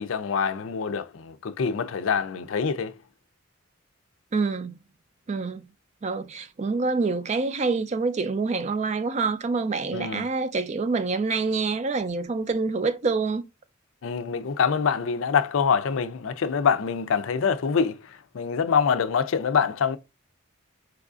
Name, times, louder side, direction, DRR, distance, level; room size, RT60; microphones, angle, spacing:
voice 1, 0.0-2.9 9.9-10.3 14.0-20.0, left 6 dB, 80° left, 0.4 m, -25 dB
voice 2, 4.3-4.8 5.3-5.7 6.0-13.4, right 4 dB, 35° right, 0.4 m, -26 dB
4.6 x 2.5 x 2.3 m
head